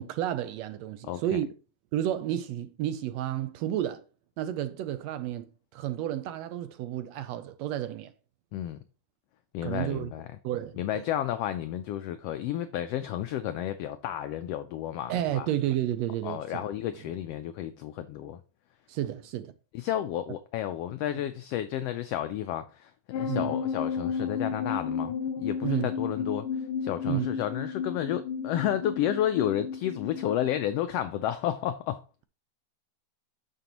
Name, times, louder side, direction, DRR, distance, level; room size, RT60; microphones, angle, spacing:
voice 1, 0.0-1.5 1.9-4.0 4.4-8.1 9.6-10.1 10.4-11.0 15.1-16.6 18.9-19.5 23.3-23.6 25.6-25.9 27.1-27.3, right 12 dB, 80° right, 1.6 m, -31 dB
voice 2, 1.1-1.4 8.5-8.8 9.5-10.3 10.8-15.5 16.2-18.4 19.7-32.0, left 11 dB, 85° left, 1.4 m, -31 dB
sound 1, 23.1-30.5, left 6 dB, 65° left, 1.5 m, -33 dB
9.1 x 6.7 x 2.9 m
omnidirectional pair, 3.3 m